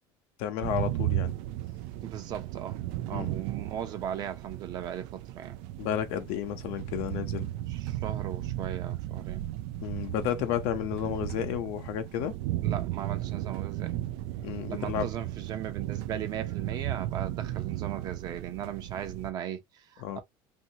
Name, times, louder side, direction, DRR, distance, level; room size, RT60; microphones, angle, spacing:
voice 1, 0.4-1.4 3.1-3.3 5.8-7.5 9.8-12.3 14.4-15.1 20.0-20.2, left 10 dB, 65° left, 0.8 m, -32 dB
sound 1, 0.6-19.3, right 14 dB, 70° right, 0.4 m, -35 dB
voice 2, 2.0-2.8 3.1-5.6 7.7-9.5 12.6-14.0 14.7-20.2, right 10 dB, 40° right, 0.7 m, -38 dB
2.7 x 2.7 x 2.7 m
cardioid pair, 160°, 10 cm